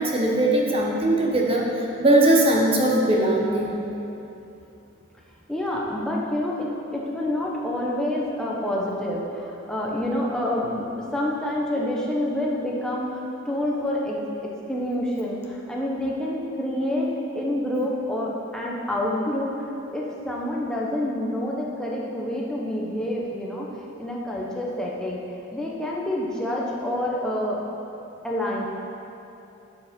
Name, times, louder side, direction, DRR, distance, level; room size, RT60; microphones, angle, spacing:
voice 1, 0.0-1.7 2.0-3.7, right 1 dB, 25° right, -2 dB, 1.1 m, -20 dB
voice 2, 5.5-19.5 19.9-23.7 24.0-25.2 25.5-27.6 28.2-28.7, left 1 dB, 5° left, -4 dB, 1.0 m, -27 dB
12.0 x 5.2 x 5.3 m, 2.9 s
head